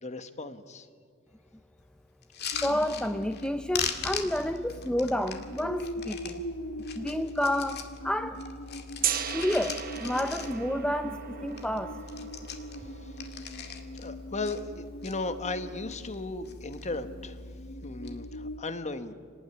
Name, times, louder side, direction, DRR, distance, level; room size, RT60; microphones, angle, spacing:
voice 1, 0.0-0.9 12.8-13.1 13.9-17.4 17.8-19.1, left 3 dB, 35° left, 10 dB, 1.3 m, -36 dB
sound 1, 2.2-3.5 3.7-6.4 6.8-8.0 8.3-10.8 11.2-11.3 11.5-11.8 12.0-14.1 14.4-15.1 15.7-16.2 16.4-17.0 17.8-18.1, left 7 dB, 50° left, 2.1 m, -39 dB
sound 2, 2.5-18.6, equal, 80° left, 1.5 m, -42 dB
voice 2, 2.6-6.4 6.9-8.4 9.3-12.0, left 1 dB, 5° left, 8 dB, 0.5 m, -30 dB
Gong, 9.0-14.9, right 10 dB, 45° right, 1.0 m, -37 dB
27.0 x 19.0 x 9.6 m, 2.2 s
head